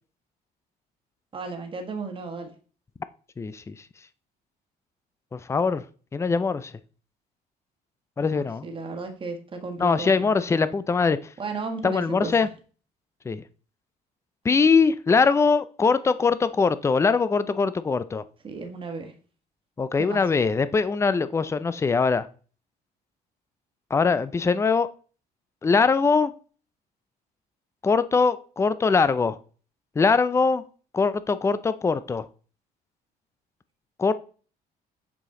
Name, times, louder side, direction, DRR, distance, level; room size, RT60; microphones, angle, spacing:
voice 1, 1.3-2.5 8.2-10.4 11.4-12.3 18.4-19.1 20.0-20.2, right 4 dB, 30° right, 4 dB, 1.4 m, -34 dB
voice 2, 3.4-3.7 5.3-5.8 6.1-6.7 8.2-8.7 9.8-11.2 11.8-12.5 13.3-13.4 14.4-18.2 19.8-22.3 23.9-24.9 25.6-26.3 27.8-29.4 30.0-30.6 30.9-32.2 34.0-34.1, left 4 dB, 15° left, 14 dB, 0.4 m, -22 dB
6.9 x 5.0 x 3.7 m, 0.40 s
cardioid pair, 110°, 17 cm